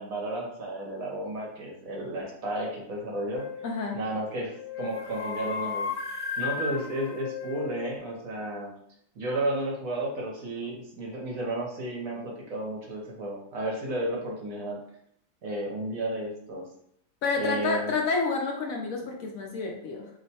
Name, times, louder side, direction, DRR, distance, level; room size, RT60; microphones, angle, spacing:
voice 1, 0.0-3.5 3.9-5.9 6.4-8.7 9.1-14.8 15.4-16.7 17.4-17.9, right 1 dB, 60° right, -2 dB, 1.2 m, -32 dB
sound 1, 3.4-3.8 4.6-8.0, left 5 dB, 85° left, 1.2 m, -34 dB
voice 2, 3.6-4.0 17.2-20.1, left 4 dB, 70° left, 1 dB, 0.9 m, -29 dB
3.0 x 2.1 x 4.1 m, 0.70 s
omnidirectional pair, 1.7 m